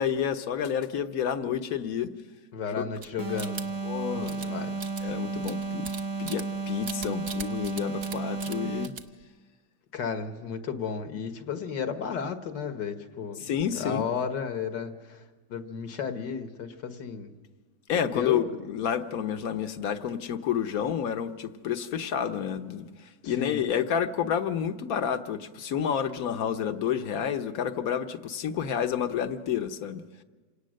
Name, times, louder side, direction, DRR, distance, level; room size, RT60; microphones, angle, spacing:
voice 1, 0.0-2.1 2.7-2.9 3.8-4.4 5.0-5.9 6.2-8.9 13.4-14.1 17.9-22.9 23.2-30.0, left 8 dB, 60° left, 9 dB, 1.3 m, -29 dB
voice 2, 2.5-3.7 4.1-5.2 9.9-13.4 13.7-15.2 15.5-17.3 18.1-18.5 23.2-23.7, left 6 dB, 75° left, 7 dB, 2.0 m, -33 dB
sound 1, 3.0-3.9 4.2-4.5 4.8-6.6 6.8-8.2 8.4-8.6 8.8-9.2, right 5 dB, 45° right, 0.9 m, -39 dB
sound 2, 3.2-9.1, right 4 dB, 20° right, 0.7 m, -33 dB
27.5 x 18.0 x 6.5 m, 1.4 s
omnidirectional pair, 1.9 m